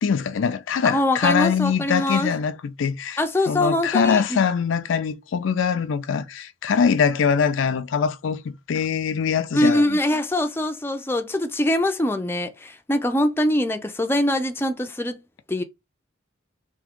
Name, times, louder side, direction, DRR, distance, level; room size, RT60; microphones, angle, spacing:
voice 1, 0.0-3.2 3.5-10.0, left 6 dB, 80° left, 0.4 m, -23 dB
voice 2, 0.8-2.3 3.2-4.4 9.5-15.2 15.5-15.6, left 1 dB, 10° left, 0.5 m, -23 dB
3.5 x 2.7 x 3.6 m
head